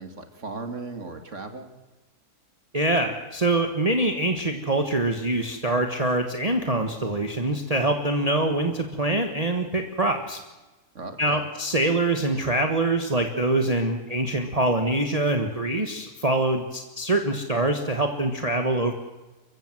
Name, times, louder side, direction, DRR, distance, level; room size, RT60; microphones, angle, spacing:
voice 1, 0.0-1.7 10.9-11.4, right 3 dB, 50° right, 7 dB, 2.3 m, -37 dB
voice 2, 2.7-10.4 11.2-18.9, right 2 dB, 25° right, 5 dB, 1.5 m, -24 dB
29.5 x 15.5 x 7.7 m, 1.1 s
omnidirectional pair, 1.6 m